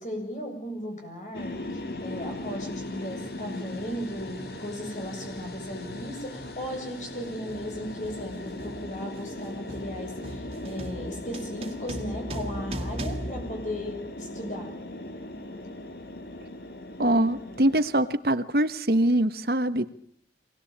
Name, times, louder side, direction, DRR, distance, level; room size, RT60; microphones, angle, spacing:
voice 1, 0.0-14.7, equal, 45° left, 3 dB, 7.7 m, -36 dB
sound 1, 1.3-17.8, left 1 dB, 65° left, 2.5 m, -38 dB
sound 2, 4.2-4.4 5.3-5.6 5.8-14.4, right 1 dB, 35° right, 2.4 m, -40 dB
voice 2, 17.0-19.9, right 1 dB, 60° right, 12 dB, 1.3 m, -23 dB
24.5 x 19.0 x 8.8 m, 0.65 s
head